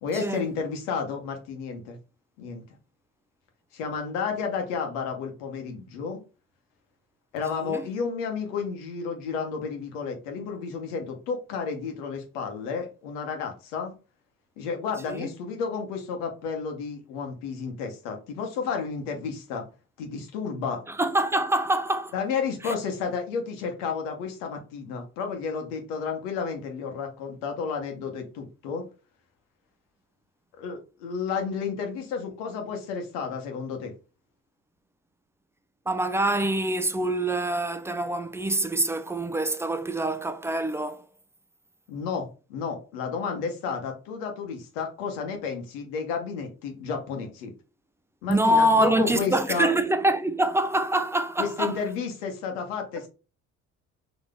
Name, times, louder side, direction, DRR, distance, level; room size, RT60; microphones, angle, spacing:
voice 1, 0.0-2.0 2.4-2.6 3.7-6.2 7.3-13.9 14.6-19.7 20.0-20.8 22.1-28.8 30.6-33.9 41.9-47.5 48.2-49.7 51.4-53.1, left 5 dB, 85° left, 1.2 m, -31 dB
voice 2, 7.5-7.9 15.1-15.3 20.9-22.1 22.6-22.7 35.9-41.0 48.3-51.8, right 1 dB, 5° right, 0.5 m, -25 dB
3.9 x 3.1 x 3.7 m
hypercardioid pair, 60°, 36 cm